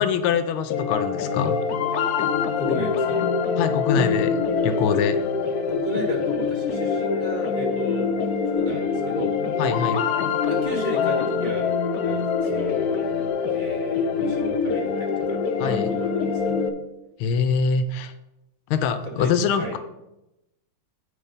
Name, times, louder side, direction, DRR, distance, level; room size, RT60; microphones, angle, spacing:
voice 1, 0.0-1.6 3.6-4.4 4.6-5.2 9.6-10.0 15.6-15.9 17.2-18.1 18.7-19.8, left 6 dB, 90° left, 10 dB, 1.5 m, -24 dB
sound 1, 0.7-16.7, left 5 dB, 65° left, 1.0 m, -24 dB
voice 2, 2.6-3.2 5.7-8.1 8.5-9.3 10.4-11.7 12.0-16.6 19.0-19.3 19.6-19.8, left 1 dB, 30° left, 0 dB, 1.0 m, -33 dB
8.8 x 7.8 x 4.0 m, 0.92 s
omnidirectional pair, 2.2 m